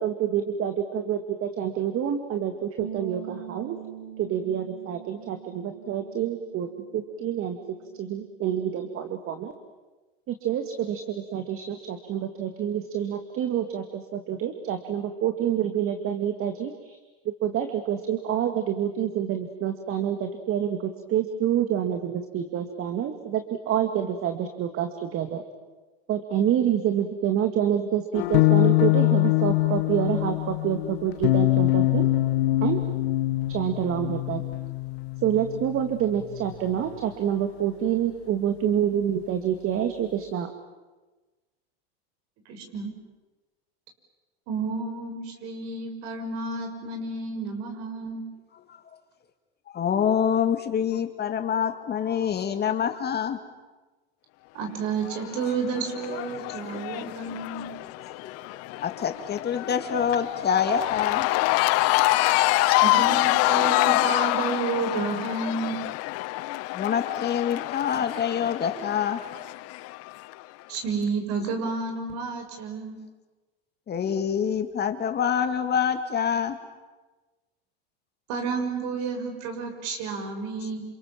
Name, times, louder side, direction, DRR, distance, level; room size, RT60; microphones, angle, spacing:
voice 1, 0.0-3.8 4.2-6.7 6.9-7.6 7.9-9.5 10.3-17.0 17.4-25.4 26.1-32.1 32.6-32.8 33.5-34.4 35.2-40.5, right 9 dB, 45° right, 7 dB, 2.2 m, -27 dB
sound 1, 2.8-9.0, right 10 dB, 75° right, 7.0 m, -44 dB
sound 2, 28.1-36.9, left 18 dB, 75° left, 1.2 m, -24 dB
voice 2, 42.5-42.9 44.5-48.2 54.5-57.7 62.8-65.8 70.7-73.0 78.3-80.8, right 4 dB, 60° right, 5 dB, 6.6 m, -31 dB
voice 3, 49.7-53.4 56.5-57.2 57.8-57.9 58.2-58.4 58.7-61.3 66.7-69.2 73.9-76.6, left 8 dB, 30° left, 7 dB, 2.3 m, -26 dB
Cheering / Crowd, 55.0-70.3, left 19 dB, 50° left, 0.8 m, -26 dB
28.5 x 27.5 x 7.5 m, 1.2 s
hypercardioid pair, 105°, 32 cm